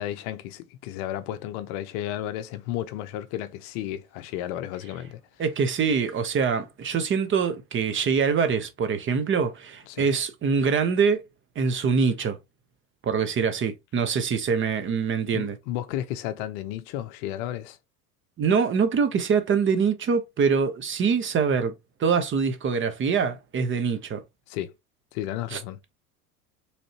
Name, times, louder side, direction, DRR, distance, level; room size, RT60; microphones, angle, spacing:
voice 1, 0.0-5.2 9.9-10.1 15.3-17.8 24.5-24.7 25.1-25.8, left 12 dB, 50° left, 0.7 m, -33 dB
voice 2, 5.4-11.2 11.6-12.4 13.0-15.6 18.4-21.7 22.0-24.2 25.5-25.6, right 6 dB, 25° right, 0.8 m, -24 dB
5.1 x 3.3 x 2.8 m
figure-of-eight pair, 75°, 44 cm